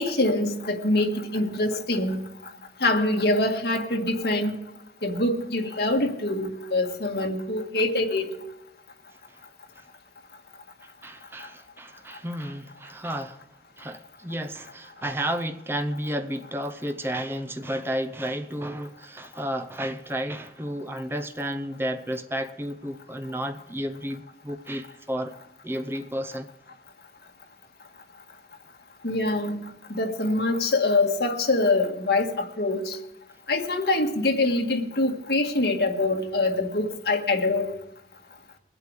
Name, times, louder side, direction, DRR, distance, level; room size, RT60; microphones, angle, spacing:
voice 1, 0.0-2.2 2.8-4.5 5.0-8.3 29.0-33.0 33.5-37.8, left 2 dB, 65° left, 1.8 m, -24 dB
voice 2, 10.8-13.4 13.8-25.3 25.6-26.5, equal, 15° right, 0.7 m, -32 dB
22.5 x 8.2 x 4.8 m
head